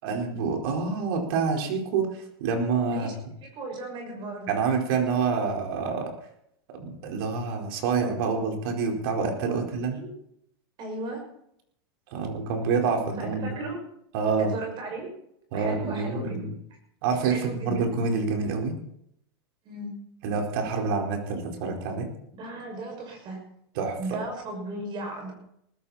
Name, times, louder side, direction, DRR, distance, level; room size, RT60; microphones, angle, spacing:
voice 1, 0.0-2.1 2.4-3.1 4.5-6.1 6.7-10.0 12.1-13.5 14.1-14.6 15.5-16.5 17.0-18.8 20.2-22.1 23.8-24.0, right 5 dB, 60° right, 2 dB, 4.5 m, -27 dB
voice 2, 3.4-4.5 9.5-9.6 9.9-10.1 10.8-11.2 13.2-13.8 14.4-15.1 15.5-16.5 17.3-17.8 19.6-19.9 22.4-23.4 24.0-25.3, right 2 dB, 35° right, 3 dB, 6.1 m, -36 dB
19.5 x 13.5 x 4.3 m, 0.73 s
supercardioid pair, 135°, 13 cm